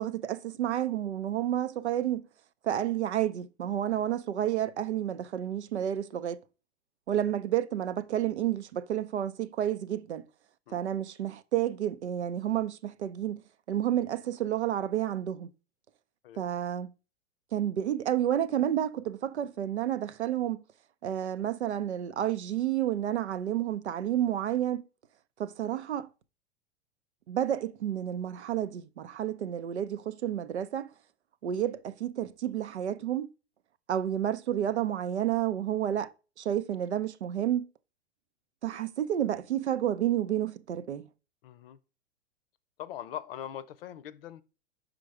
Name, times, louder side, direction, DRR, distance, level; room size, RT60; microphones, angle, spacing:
voice 1, 0.0-2.3 2.6-6.4 7.1-10.2 10.7-13.4 13.7-15.5 16.4-16.9 17.5-20.6 21.0-24.8 25.4-26.1 27.3-30.9 31.4-33.3 33.9-36.1 36.4-37.7 38.6-41.1, right 11 dB, 75° right, 0.6 m, -30 dB
voice 2, 41.4-41.8 42.8-44.4, left 10 dB, 55° left, 0.7 m, -41 dB
5.2 x 5.0 x 4.6 m
figure-of-eight pair, 100°, 34 cm